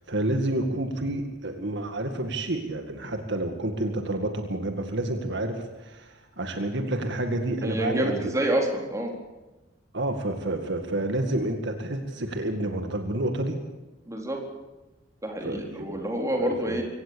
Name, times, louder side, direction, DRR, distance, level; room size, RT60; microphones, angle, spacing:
voice 1, 0.1-8.3 9.9-13.6 15.4-16.0 16.4-16.8, right 1 dB, 60° right, 5 dB, 2.1 m, -29 dB
voice 2, 7.6-9.1 14.1-14.4 15.2-16.8, right 1 dB, 15° right, 1 dB, 4.1 m, -27 dB
24.5 x 17.5 x 7.1 m, 1.1 s
head